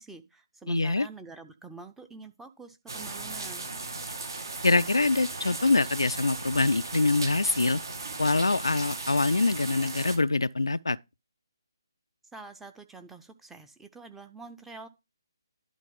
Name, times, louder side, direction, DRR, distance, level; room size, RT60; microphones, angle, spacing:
voice 1, 0.0-3.7 12.3-14.9, right 3 dB, 5° right, 0.6 m, -46 dB
voice 2, 0.7-1.1 4.6-7.8 8.2-11.0, left 3 dB, 75° left, 0.3 m, -24 dB
sound 1, 2.9-10.2, right 3 dB, 60° right, 1.8 m, -37 dB
11.0 x 3.7 x 4.9 m
figure-of-eight pair, 145°, 2 cm